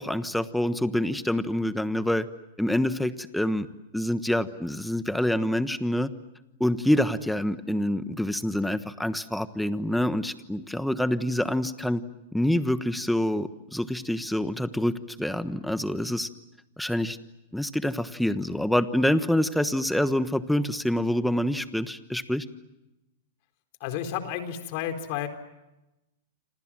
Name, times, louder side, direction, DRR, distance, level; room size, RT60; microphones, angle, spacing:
voice 1, 0.0-2.3 2.6-3.7 3.9-6.1 6.6-12.0 12.3-16.3 16.8-17.2 17.5-22.5, left 1 dB, ahead, 12 dB, 1.2 m, -26 dB
voice 2, 23.8-25.3, left 10 dB, 50° left, 7 dB, 4.0 m, -31 dB
28.5 x 27.0 x 7.5 m, 0.96 s
hypercardioid pair, 145°, 0 cm